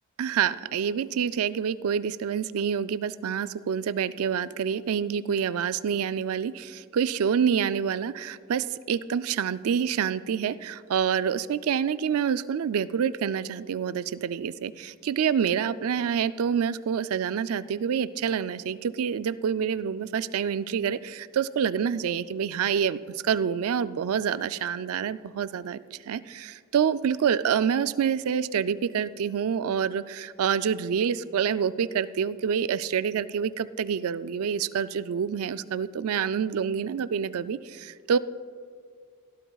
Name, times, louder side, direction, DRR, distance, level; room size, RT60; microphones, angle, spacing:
voice 1, 0.2-38.2, right 7 dB, 75° right, 15 dB, 0.4 m, -27 dB
17.5 x 12.0 x 2.3 m, 2.1 s
head